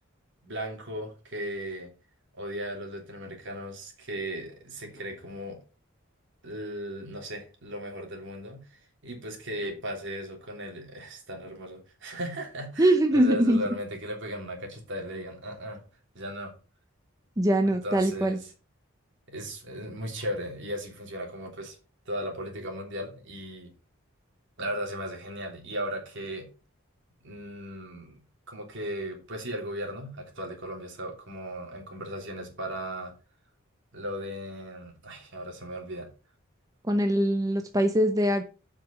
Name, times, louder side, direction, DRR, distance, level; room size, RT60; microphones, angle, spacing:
voice 1, 0.4-1.9 2.4-5.6 6.4-15.8 16.1-16.5 17.6-18.5 19.3-21.8 22.0-23.7 24.6-26.5 27.2-28.2 28.5-33.1 33.9-36.1, equal, 60° right, 2 dB, 3.2 m, -36 dB
voice 2, 12.8-13.6 17.4-18.4 36.8-38.4, right 1 dB, 15° right, 6 dB, 0.8 m, -22 dB
7.8 x 6.0 x 5.9 m, 0.34 s
head